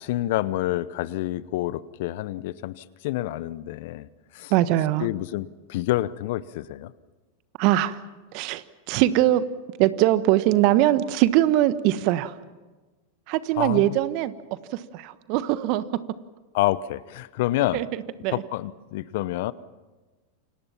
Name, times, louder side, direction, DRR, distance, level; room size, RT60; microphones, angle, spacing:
voice 1, 0.0-4.1 4.3-4.5 5.0-6.9 13.6-13.8 16.5-17.8 18.3-19.5, left 15 dB, 60° left, 18 dB, 0.9 m, -28 dB
voice 2, 4.5-5.1 7.6-8.0 8.3-9.4 9.8-12.3 13.3-15.8 17.7-18.4, right 14 dB, 50° right, 14 dB, 1.3 m, -22 dB
29.0 x 26.0 x 5.8 m, 1.2 s
hypercardioid pair, 95°, 0 cm